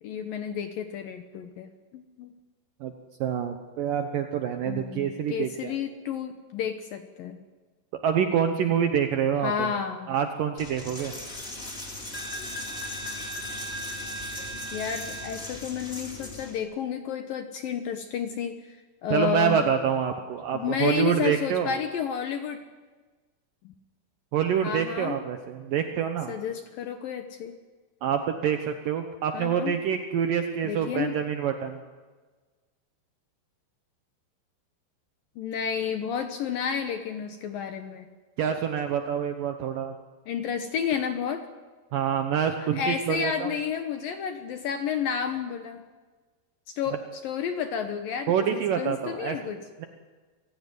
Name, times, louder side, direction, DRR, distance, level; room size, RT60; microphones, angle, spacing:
voice 1, 0.0-2.3 4.7-7.4 9.4-10.1 14.7-18.8 19.0-19.7 20.5-22.6 23.6-23.7 24.6-25.2 26.3-27.6 29.3-29.8 30.6-31.2 35.4-38.1 40.3-41.5 42.6-45.8 46.7-49.6, left 7 dB, 70° left, 7 dB, 2.1 m, -31 dB
voice 2, 3.2-5.7 8.0-9.7 10.1-11.1 19.1-21.7 24.3-26.3 28.0-31.8 38.4-39.9 41.9-43.5 48.3-49.4 49.8-49.9, right 8 dB, 80° right, 6 dB, 1.9 m, -26 dB
Coin (dropping), 10.6-16.6, equal, 15° left, 3.2 m, -37 dB
26.0 x 16.5 x 9.5 m, 1.4 s
omnidirectional pair, 5.5 m